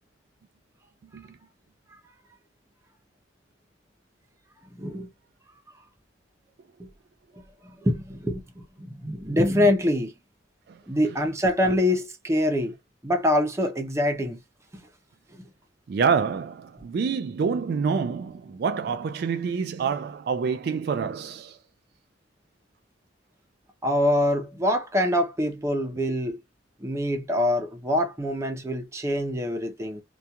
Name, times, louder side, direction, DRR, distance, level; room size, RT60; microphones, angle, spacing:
voice 1, 4.7-5.1 6.8-6.9 7.6-10.1 10.9-12.7 13.0-14.4 14.7-14.8 23.8-26.4 26.8-30.0, left 1 dB, 15° right, 0.6 m, -25 dB
voice 2, 15.9-21.5, right 6 dB, 60° right, 0.3 m, -27 dB
2.8 x 2.3 x 2.2 m
head